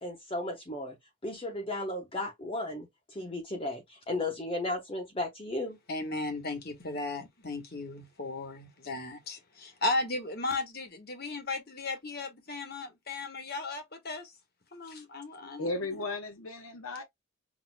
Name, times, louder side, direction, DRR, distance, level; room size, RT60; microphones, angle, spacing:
voice 1, 0.0-0.9 1.2-5.8, left 2 dB, 25° left, 1.0 m, -35 dB
voice 2, 5.9-14.3 14.7-15.7, left 2 dB, 45° left, 1.2 m, -35 dB
voice 3, 15.6-17.0, left 2 dB, 75° left, 0.9 m, -35 dB
6.1 x 2.8 x 2.2 m
head